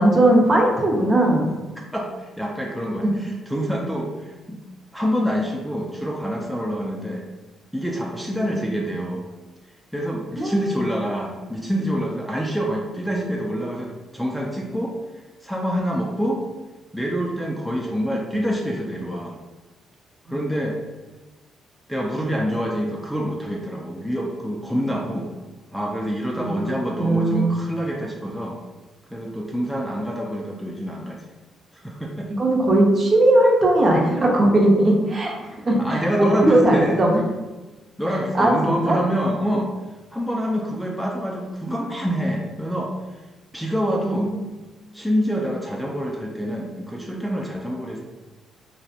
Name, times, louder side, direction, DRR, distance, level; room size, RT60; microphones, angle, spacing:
voice 1, 0.0-1.5 3.0-3.1 8.3-8.5 10.4-10.7 26.4-27.6 32.3-37.2 38.3-39.0 44.0-44.4, right 1 dB, 35° right, -1 dB, 0.6 m, -19 dB
voice 2, 1.9-4.6 4.9-7.2 7.7-9.3 9.9-16.4 16.9-19.4 20.3-20.8 21.9-25.3 25.7-28.6 29.1-31.2 31.7-32.3 35.8-37.1 38.0-39.7 40.1-42.9 43.5-44.3 44.9-48.0, equal, ahead, -2 dB, 0.3 m, -26 dB
2.4 x 2.0 x 2.7 m, 1.2 s
cardioid pair, 90°, 0 cm